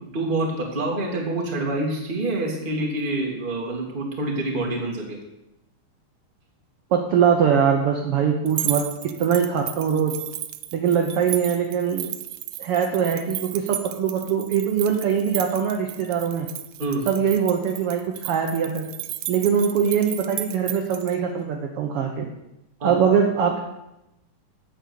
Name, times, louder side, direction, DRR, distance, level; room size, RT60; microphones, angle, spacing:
voice 1, 0.1-5.2 16.8-17.0 22.8-22.9, right 2 dB, 20° right, -1 dB, 1.6 m, -26 dB
voice 2, 6.9-8.8 9.2-10.1 10.7-12.1 12.6-16.5 17.1-18.9 19.3-22.2 22.8-23.6, right 7 dB, 65° right, 3 dB, 1.5 m, -22 dB
sound 1, 8.5-21.1, right 14 dB, 80° right, 2.1 m, -34 dB
8.6 x 8.0 x 6.8 m, 0.90 s
omnidirectional pair, 3.7 m